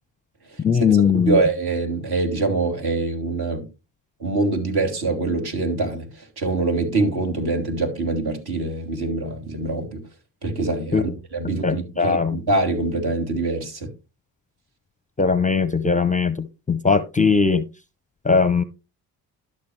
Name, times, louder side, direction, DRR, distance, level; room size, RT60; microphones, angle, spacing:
voice 1, 0.6-1.4 10.9-11.1 11.6-12.4 15.2-17.6 18.2-18.6, left 5 dB, 15° left, 0.6 m, -19 dB
voice 2, 1.3-3.7 4.2-10.0 10.4-13.9, right 3 dB, 55° right, 3.2 m, -24 dB
12.0 x 6.6 x 3.3 m
hypercardioid pair, 50°, 47 cm